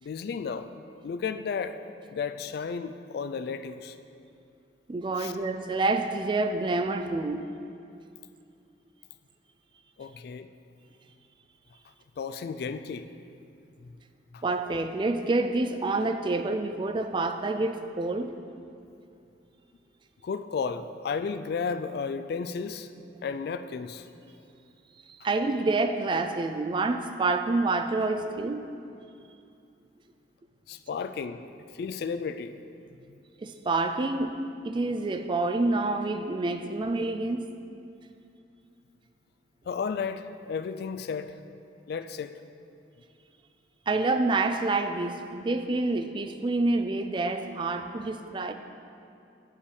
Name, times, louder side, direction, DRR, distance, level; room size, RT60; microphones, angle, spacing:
voice 1, 0.0-0.7 1.0-1.8 2.1-4.0 5.2-5.3 10.0-10.5 12.2-13.1 14.3-14.4 20.2-22.9 23.2-24.1 30.7-31.4 31.7-32.6 39.7-41.4 41.9-42.4, left 5 dB, 55° left, 11 dB, 0.3 m, -33 dB
voice 2, 4.9-7.5 14.4-18.3 25.2-28.7 33.4-34.4 34.6-37.5 43.9-48.5, right 3 dB, 25° right, 7 dB, 0.3 m, -27 dB
8.6 x 5.4 x 4.8 m, 2.6 s
head